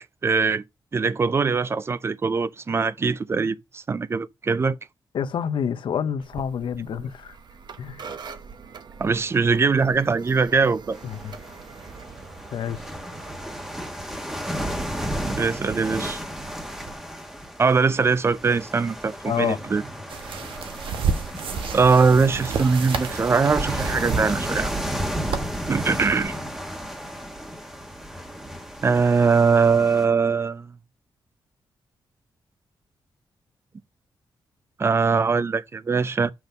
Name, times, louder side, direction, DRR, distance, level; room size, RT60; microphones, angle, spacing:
voice 1, 0.2-0.6 0.9-4.8 9.0-11.0 15.2-16.2 17.6-19.8 21.7-24.7 25.7-26.3 28.8-30.8 34.8-36.3, right 5 dB, 30° right, 0.4 m, -21 dB
voice 2, 5.1-7.3 7.8-8.0 11.0-11.3 12.5-12.8 19.3-19.6, left 8 dB, 75° left, 0.8 m, -27 dB
sound 1, 6.2-16.9, right 6 dB, 55° right, 0.9 m, -44 dB
sound 2, 10.9-30.1, equal, 5° right, 1.2 m, -33 dB
sound 3, 20.1-26.2, right 6 dB, 85° right, 1.1 m, -31 dB
6.1 x 5.3 x 5.3 m
wide cardioid pair, 120°, 9 cm